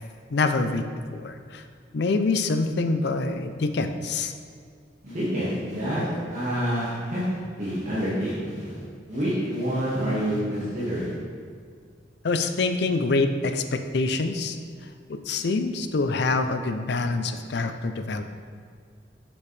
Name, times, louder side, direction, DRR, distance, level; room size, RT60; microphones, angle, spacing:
voice 1, 0.3-0.9 1.1-1.6 1.9-4.3 12.2-14.6 15.1-18.2, left 3 dB, 65° left, 8 dB, 0.5 m, -25 dB
voice 2, 5.0-7.3 7.6-8.8 9.1-11.1, equal, 40° right, -10 dB, 1.6 m, -27 dB
7.1 x 7.0 x 3.3 m, 2.1 s
head